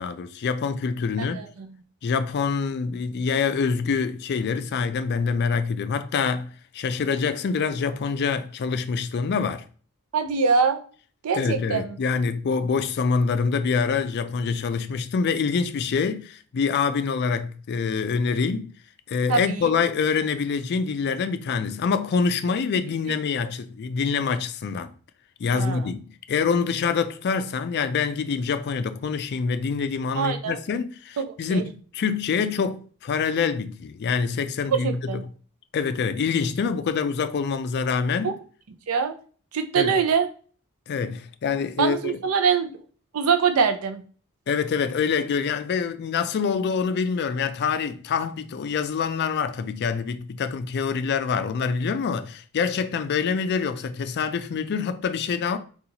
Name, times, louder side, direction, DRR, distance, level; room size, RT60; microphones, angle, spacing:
voice 1, 0.0-1.4 2.0-9.7 11.3-18.7 19.1-24.9 25.4-35.0 35.7-38.3 39.8-39.9 40.9-42.2 44.5-55.6, left 5 dB, 50° left, 0.3 m, -25 dB
voice 2, 1.2-1.7 10.1-10.8 11.2-12.0 19.3-19.7 25.5-25.9 30.2-30.6 31.2-31.6 34.7-35.2 38.2-38.3 38.9-39.1 39.5-40.3 41.8-42.7 43.1-44.0, right 6 dB, 75° right, 0.5 m, -23 dB
4.0 x 2.3 x 2.8 m
head